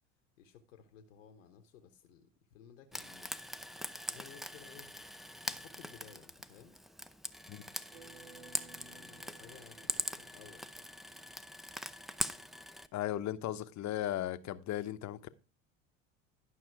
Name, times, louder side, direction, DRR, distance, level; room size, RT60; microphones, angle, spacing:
voice 1, 0.4-3.3 4.1-4.9 5.5-6.8 8.8-10.8, left 8 dB, 85° left, 1.1 m, -57 dB
Frying (food), 2.9-12.9, equal, ahead, 0.5 m, -42 dB
sound 1, 7.9-11.0, right 4 dB, 60° right, 2.7 m, -57 dB
voice 2, 12.9-15.3, left 13 dB, 45° left, 0.9 m, -36 dB
11.5 x 5.8 x 4.6 m
hypercardioid pair, 80°, 38 cm